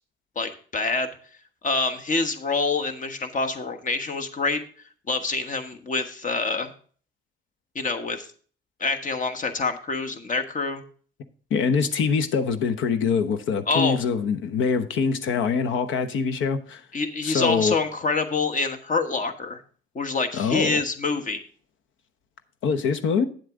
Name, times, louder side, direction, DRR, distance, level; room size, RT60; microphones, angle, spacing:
voice 1, 0.3-1.1 1.6-4.6 5.1-6.7 7.7-8.3 8.8-10.8 13.7-14.0 16.9-19.6 19.9-21.4, left 4 dB, 40° left, 1.3 m, -26 dB
voice 2, 11.5-16.8 17.2-17.8 20.3-20.8 22.6-23.3, left 5 dB, 80° left, 1.0 m, -24 dB
9.0 x 7.8 x 3.7 m
cardioid pair, 90°, 20 cm